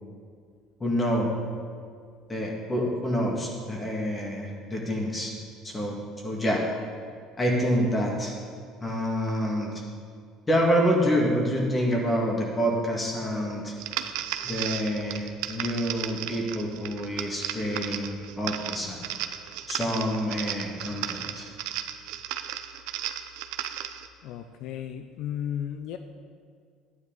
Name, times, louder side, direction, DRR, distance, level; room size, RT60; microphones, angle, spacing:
voice 1, 0.8-1.3 2.3-5.3 5.6-6.6 7.4-8.3 8.8-9.7 10.5-13.7 14.4-19.0 19.7-21.5, equal, 15° left, -1 dB, 1.9 m, -27 dB
sound 1, 13.8-24.1, right 11 dB, 85° right, 0.6 m, -35 dB
voice 2, 24.2-26.0, left 9 dB, 65° left, 8 dB, 0.5 m, -34 dB
12.0 x 9.7 x 3.9 m, 2.1 s
cardioid pair, 140°, 0 cm